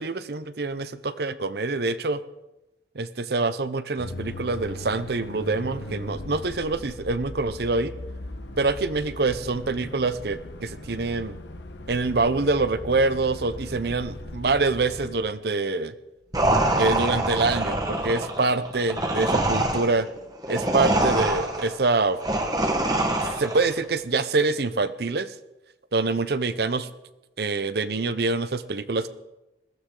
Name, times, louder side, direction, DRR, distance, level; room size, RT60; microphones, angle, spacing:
voice 1, 0.0-2.2 2.9-7.9 8.6-11.4 11.9-15.9 16.7-20.1 20.5-22.2 23.4-25.3 25.9-26.9 27.4-29.1, right 3 dB, 60° right, 14 dB, 0.7 m, -25 dB
sound 1, 4.0-15.2, left 1 dB, 75° left, 1.3 m, -39 dB
sound 2, 16.3-23.7, right 1 dB, 20° right, 1.5 m, -25 dB
21.0 x 16.0 x 3.9 m, 1.0 s
head